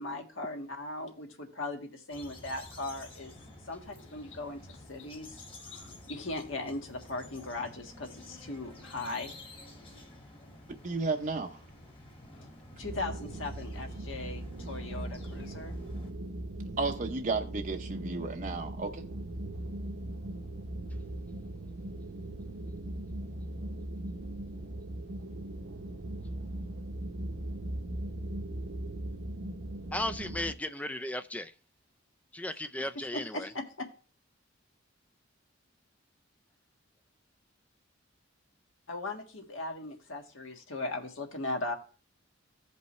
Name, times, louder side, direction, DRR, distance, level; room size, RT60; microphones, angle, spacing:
voice 1, 0.0-3.3 3.6-9.3 12.4-12.5 12.8-15.7 33.1-33.9 38.9-41.7, left 2 dB, 75° left, 1.6 m, -38 dB
sound 1, 2.1-16.1, left 1 dB, 25° left, 1.6 m, -50 dB
voice 2, 10.8-11.6 16.8-19.0, right 3 dB, 40° right, 0.6 m, -33 dB
sound 2, 12.8-30.5, right 1 dB, 65° right, 0.9 m, -39 dB
voice 3, 29.9-31.5 32.3-33.5, left 1 dB, 5° left, 0.3 m, -35 dB
15.5 x 5.3 x 3.1 m
head